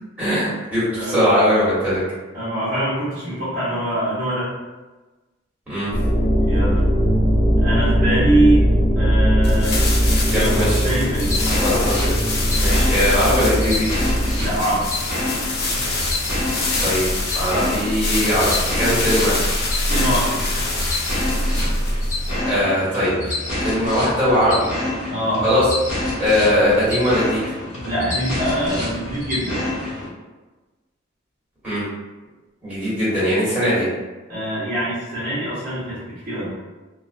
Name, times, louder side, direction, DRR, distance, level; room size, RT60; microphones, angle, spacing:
voice 1, 0.2-2.0 5.7-5.9 10.3-10.8 11.5-11.8 12.6-13.9 16.8-17.0 17.3-19.4 22.4-24.7 25.4-25.6 26.2-27.4 31.6-31.8 32.6-33.9, equal, 10° right, -10 dB, 1.3 m, -20 dB
voice 2, 0.9-1.3 2.3-4.5 6.5-6.8 7.6-8.6 8.9-9.8 10.3-11.4 14.4-14.9 19.9-20.4 25.1-25.4 27.8-29.6 34.3-36.5, right 1 dB, 45° right, -10 dB, 0.7 m, -23 dB
sound 1, 5.9-14.6, equal, 70° left, 1.2 m, -19 dB
sound 2, 9.4-22.6, left 1 dB, 55° left, 0.5 m, -25 dB
sound 3, 10.9-30.1, left 2 dB, 85° left, 1.0 m, -28 dB
2.4 x 2.1 x 2.4 m, 1.2 s
head